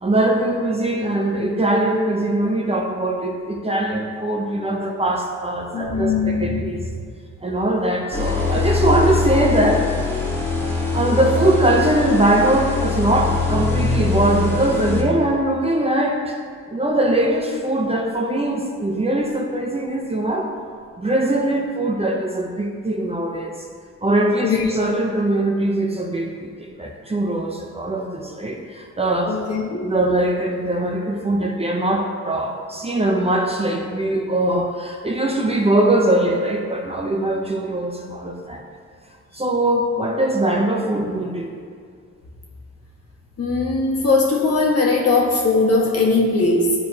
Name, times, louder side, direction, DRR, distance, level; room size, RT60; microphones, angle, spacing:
voice 1, 0.0-6.8 7.4-9.9 10.9-16.4 16.7-20.5 21.0-23.6 24.0-29.4 29.8-38.6 39.3-41.6, right 1 dB, 20° right, 1 dB, 0.6 m, -21 dB
voice 2, 5.7-6.6 24.4-24.7 29.2-29.9 43.4-46.7, left 3 dB, 55° left, -2 dB, 1.5 m, -19 dB
sound 1, 8.1-15.0, left 4 dB, 10° left, 1.4 m, -22 dB
11.0 x 4.7 x 2.8 m, 2.1 s
cardioid pair, 110°, 29 cm